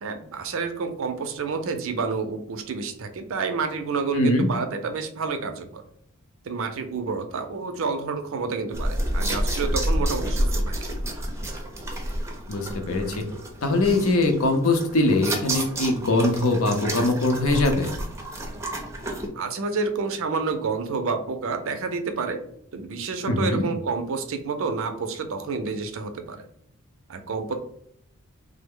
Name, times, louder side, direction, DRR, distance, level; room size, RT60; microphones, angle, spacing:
voice 1, 0.0-5.8 6.4-10.7 19.3-22.4 22.7-26.5 27.1-27.5, right 4 dB, 65° right, 7 dB, 0.5 m, -29 dB
voice 2, 4.1-4.5 12.5-13.2 13.6-17.9 23.3-23.7, left 2 dB, 70° left, 5 dB, 0.6 m, -22 dB
sound 1, 8.7-19.3, right 1 dB, 15° right, 0.5 m, -29 dB
3.2 x 2.1 x 3.6 m, 0.67 s
head